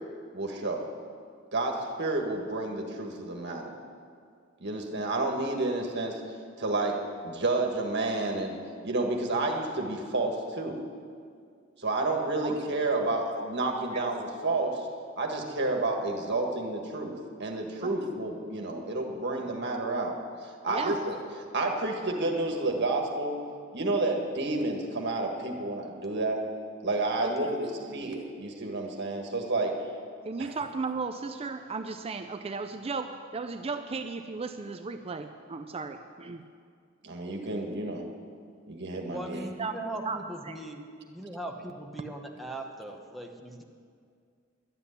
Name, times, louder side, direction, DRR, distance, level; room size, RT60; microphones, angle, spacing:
voice 1, 0.3-0.9 1.5-3.7 4.6-6.2 6.6-8.6 8.8-10.8 11.8-14.9 15.2-21.1 21.5-23.4 23.7-26.4 26.8-29.8 30.4-30.5 37.0-38.1 38.7-39.5, right 2 dB, 60° right, 2 dB, 1.7 m, -30 dB
voice 2, 20.7-21.0 27.2-27.5 27.9-28.1 30.2-36.4 39.6-39.7 40.0-40.2 40.5-40.6, right 4 dB, 30° right, 8 dB, 0.4 m, -35 dB
voice 3, 39.1-40.8 41.1-43.6, right 1 dB, ahead, 2 dB, 1.0 m, -39 dB
11.5 x 8.2 x 9.8 m, 2.2 s
head